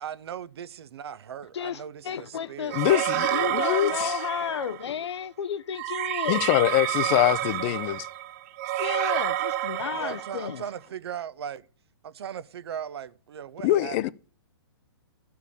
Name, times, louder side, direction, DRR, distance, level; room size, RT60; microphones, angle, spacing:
voice 1, 0.0-2.8 6.9-7.2 7.7-7.8 9.9-11.6 12.0-14.1, right 9 dB, 65° right, 0.8 m, -38 dB
voice 2, 1.5-6.5 8.8-10.6, left 8 dB, 80° left, 0.6 m, -33 dB
voice 3, 2.7-4.1 6.3-8.1 13.6-14.1, left 15 dB, 30° left, 0.4 m, -24 dB
sound 1, 2.7-4.9 5.7-10.6, right 13 dB, 35° right, 0.5 m, -29 dB
14.0 x 4.7 x 8.3 m
hypercardioid pair, 145°, 14 cm